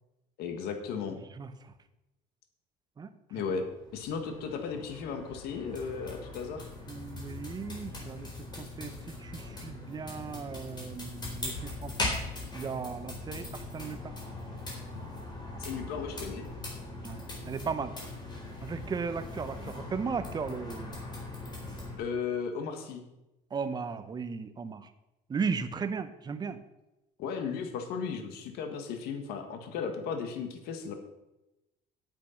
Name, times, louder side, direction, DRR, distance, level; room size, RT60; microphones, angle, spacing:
voice 1, 0.4-1.2 3.3-3.6 3.9-6.7 15.6-16.5 22.0-23.0 27.2-30.9, left 6 dB, 70° left, 6 dB, 1.7 m, -35 dB
sound 1, 3.6-22.0, left 2 dB, 25° left, 4.1 m, -40 dB
voice 2, 6.9-8.3 8.6-12.1 12.5-14.1 17.0-17.9 18.6-21.0 23.5-24.9 25.3-26.6, right 5 dB, 25° right, 11 dB, 0.8 m, -36 dB
9.2 x 8.5 x 5.8 m, 0.96 s
cardioid pair, 135°, 17 cm